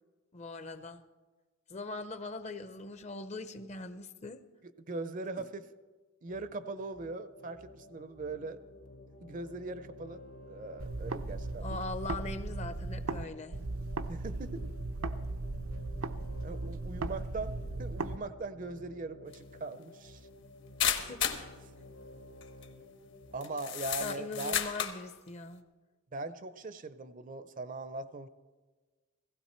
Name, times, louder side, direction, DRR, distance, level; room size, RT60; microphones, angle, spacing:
voice 1, 0.3-1.0 1.7-4.4 11.6-13.6 21.1-21.4 24.0-25.6, left 3 dB, 35° left, 11 dB, 0.6 m, -41 dB
voice 2, 4.6-5.7 6.2-8.6 9.2-10.2 10.5-11.7 14.1-14.7 16.4-20.3 23.3-24.6 26.1-28.3, right 3 dB, 40° right, 13 dB, 0.5 m, -40 dB
sound 1, 6.3-23.9, left 2 dB, 80° left, 1.9 m, -53 dB
sound 2, 10.8-13.2 13.5-18.2, right 2 dB, 85° right, 0.7 m, -37 dB
sound 3, 19.3-19.4 20.8-21.5 22.4-22.6 23.4-25.0, left 9 dB, 60° left, 1.1 m, -32 dB
16.5 x 15.5 x 4.3 m, 1.4 s
head